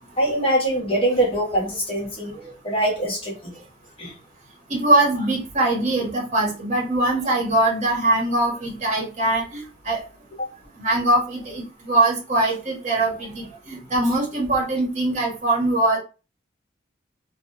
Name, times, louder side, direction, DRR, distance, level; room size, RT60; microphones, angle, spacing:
voice 1, 0.2-2.4 2.6-3.5 4.0-4.1 10.4-10.5, right 1 dB, 30° left, -1 dB, 0.9 m, -23 dB
voice 2, 4.7-10.0 10.8-16.0, right 2 dB, 40° right, -2 dB, 0.9 m, -22 dB
3.0 x 2.1 x 2.7 m, 0.32 s
head